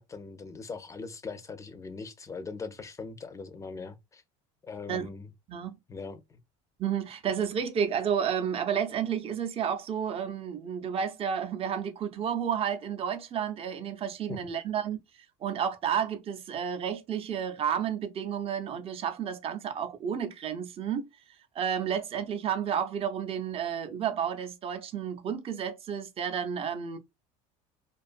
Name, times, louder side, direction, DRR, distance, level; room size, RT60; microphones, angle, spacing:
voice 1, 0.0-4.2 4.6-5.3 5.9-6.4 14.3-14.4, left 4 dB, 20° left, 0.5 m, -41 dB
voice 2, 6.8-15.0 15.4-21.1 21.5-27.0, right 8 dB, 35° right, 0.6 m, -31 dB
2.4 x 2.3 x 2.5 m
supercardioid pair, 100°, 17 cm